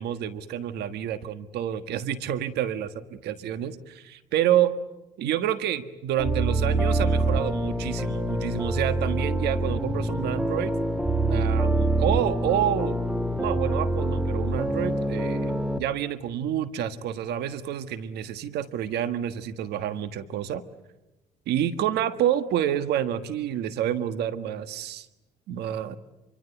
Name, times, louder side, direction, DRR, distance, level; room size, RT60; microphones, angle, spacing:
voice 1, 0.0-4.7 5.2-10.7 11.3-13.0 13.4-20.6 21.5-25.1 25.5-26.0, right 10 dB, 75° right, 11 dB, 1.5 m, -28 dB
sound 1, 6.2-15.8, right 2 dB, 5° right, 1.7 m, -25 dB
27.5 x 24.0 x 8.2 m, 1.0 s
cardioid pair, 110°, 17 cm